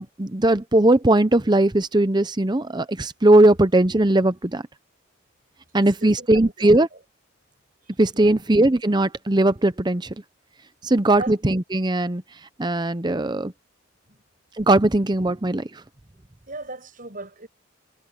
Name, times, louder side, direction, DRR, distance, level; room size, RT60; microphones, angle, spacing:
voice 1, 0.0-4.6 5.7-6.9 8.0-10.1 10.8-12.2 12.6-13.5 14.6-15.7, right 1 dB, 20° right, 0.8 m, -19 dB
voice 2, 5.8-7.0 8.1-8.4 11.2-11.4 14.1-14.2 16.5-17.5, right 2 dB, 45° right, 7.6 m, -37 dB
head